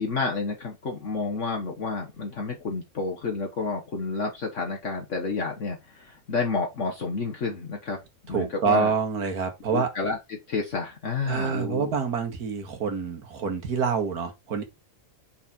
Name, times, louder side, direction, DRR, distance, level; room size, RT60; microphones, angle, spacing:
voice 1, 0.0-8.9 9.7-11.9, left 4 dB, 55° left, 1.5 m, -30 dB
voice 2, 8.3-9.9 11.3-14.6, right 6 dB, 85° right, 2.0 m, -27 dB
6.0 x 4.4 x 4.3 m
omnidirectional pair, 1.6 m